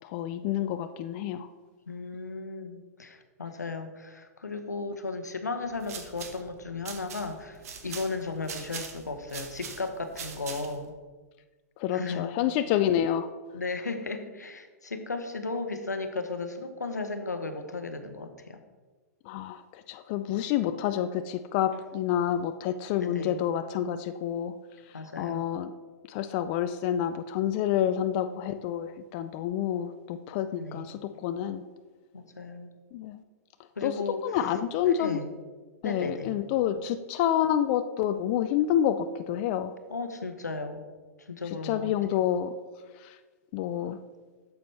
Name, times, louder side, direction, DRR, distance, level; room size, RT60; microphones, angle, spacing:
voice 1, 0.0-1.5 11.8-13.3 19.2-24.5 24.8-25.7 26.1-31.7 32.9-33.2 33.8-35.2 35.8-39.7 41.6-42.5 42.9-43.2 43.5-44.0, left 10 dB, 40° left, 9 dB, 0.4 m, -28 dB
voice 2, 1.9-10.9 11.9-12.3 13.5-18.6 21.7-21.8 23.0-23.4 24.9-25.5 28.0-28.3 30.5-30.9 32.1-32.7 33.8-34.2 34.8-35.3 35.8-36.4 39.9-40.8 41.2-41.9 43.8-44.0, left 3 dB, 85° left, 8 dB, 0.8 m, -35 dB
sound 1, 5.6-10.9, right 6 dB, 60° right, 1.1 m, -42 dB
8.9 x 7.0 x 3.3 m, 1.3 s
figure-of-eight pair, 110°, 9 cm